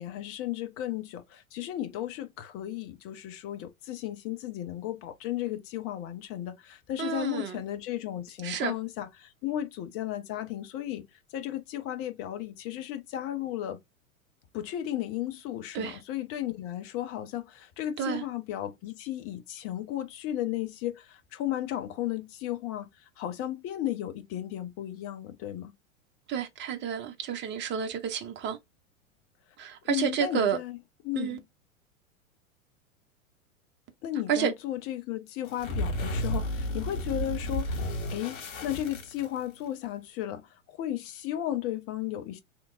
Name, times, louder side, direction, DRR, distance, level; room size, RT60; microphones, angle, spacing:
voice 1, 0.0-11.0 11.3-13.8 14.5-22.9 23.2-25.7 29.8-30.8 31.0-31.4 34.0-42.4, left 12 dB, 35° left, 0.8 m, -34 dB
voice 2, 7.0-7.6 8.4-8.7 15.7-16.0 18.0-18.2 26.3-28.6 29.6-30.6 31.2-31.4 34.3-34.5, right 8 dB, 25° right, 0.9 m, -30 dB
sound 1, 35.5-39.7, equal, 65° left, 1.7 m, -32 dB
3.4 x 3.0 x 2.5 m
figure-of-eight pair, 95°, 41 cm